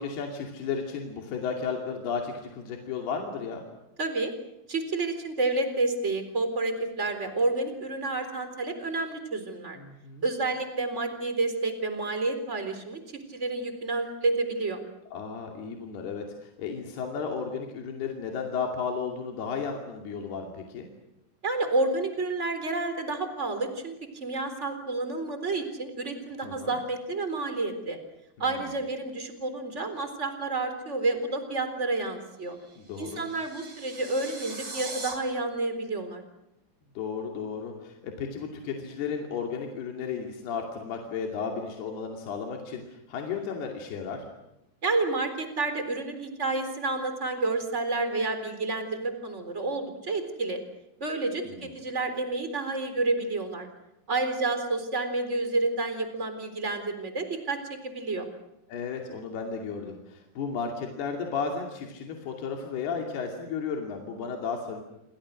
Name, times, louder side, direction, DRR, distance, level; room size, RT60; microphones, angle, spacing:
voice 1, 0.0-3.6 9.7-10.3 15.1-20.9 26.4-26.8 28.4-28.7 32.8-33.2 37.0-44.2 51.5-51.7 58.7-64.8, left 5 dB, 70° left, 2 dB, 4.5 m, -34 dB
voice 2, 4.0-4.3 4.7-9.8 10.2-13.0 13.3-14.8 21.4-23.9 24.2-28.0 28.4-32.6 33.0-36.2 44.8-50.6 51.0-53.7 54.1-57.6 57.8-58.3, right 3 dB, 15° right, 8 dB, 3.6 m, -29 dB
sound 1, 32.5-35.1, right 3 dB, 40° right, 5.8 m, -41 dB
28.5 x 25.5 x 6.5 m, 0.89 s
omnidirectional pair, 4.8 m